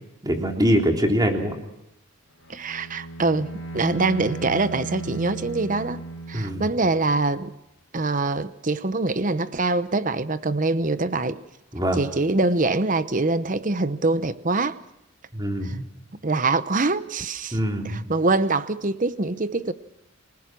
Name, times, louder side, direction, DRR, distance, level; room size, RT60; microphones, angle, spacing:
voice 1, 0.2-1.5 6.3-6.6 11.7-12.0 15.3-15.8 17.5-18.0, equal, 20° right, 3.3 m, -23 dB
Bowed string instrument, 2.4-7.2, right 3 dB, 90° left, 3.6 m, -36 dB
voice 2, 2.5-6.0 6.3-7.5 7.9-11.4 11.9-14.8 15.6-15.8 16.2-17.6 17.8-19.7, right 3 dB, 40° right, 0.9 m, -24 dB
27.5 x 19.5 x 6.1 m
head